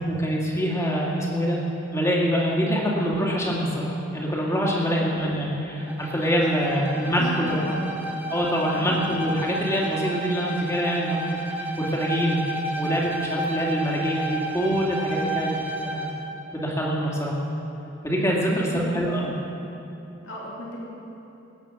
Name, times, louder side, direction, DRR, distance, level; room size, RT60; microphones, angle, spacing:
voice 1, 0.1-1.6 1.9-7.6 8.3-12.4 12.8-15.5 15.8-16.1 16.5-17.4 18.0-19.3, equal, 15° left, -3 dB, 2.6 m, -25 dB
Bowed string instrument, 5.8-16.3, right 2 dB, 10° right, 1.5 m, -32 dB
voice 2, 6.9-7.9 8.7-9.0 18.5-18.9 20.2-20.8, left 1 dB, 70° left, -4 dB, 2.9 m, -36 dB
21.0 x 8.9 x 6.2 m, 3.0 s
head